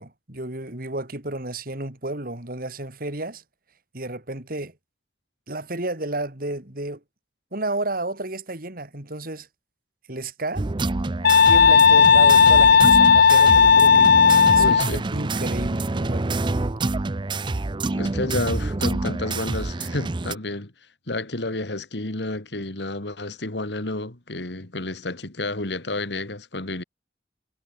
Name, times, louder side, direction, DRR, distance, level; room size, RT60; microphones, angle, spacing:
voice 1, 0.0-3.4 3.9-4.7 5.5-7.0 7.5-9.5 10.1-10.7 11.4-16.3, right 2 dB, 55° right, 3.2 m, -32 dB
sound 1, 10.6-20.3, right 2 dB, 25° right, 0.5 m, -27 dB
sound 2, 11.2-14.9, left 6 dB, 60° left, 0.6 m, -14 dB
voice 2, 14.6-15.0 17.9-20.7 21.1-26.8, left 2 dB, 75° left, 2.5 m, -30 dB
head